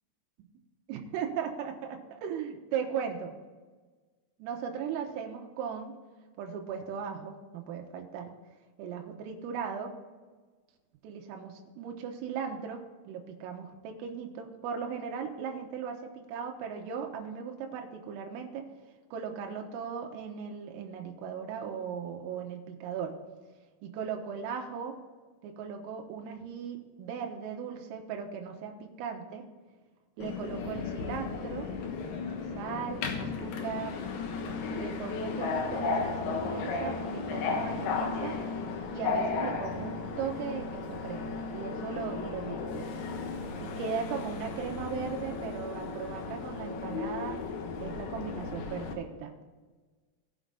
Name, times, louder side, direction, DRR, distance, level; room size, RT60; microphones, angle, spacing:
voice 1, 0.9-3.4 4.4-6.0 6.4-8.3 8.8-9.9 11.0-18.7 19.1-23.2 23.8-25.0 25.4-29.4 30.2-31.7 32.6-34.0 34.7-38.4 38.9-42.9 43.6-47.4 47.8-49.3, right 7 dB, 90° right, 2 dB, 3.8 m, -37 dB
Subway metro underground, 30.2-48.9, left 4 dB, 70° left, 2.5 m, -35 dB
18.5 x 6.4 x 3.9 m, 1.4 s
omnidirectional pair, 5.9 m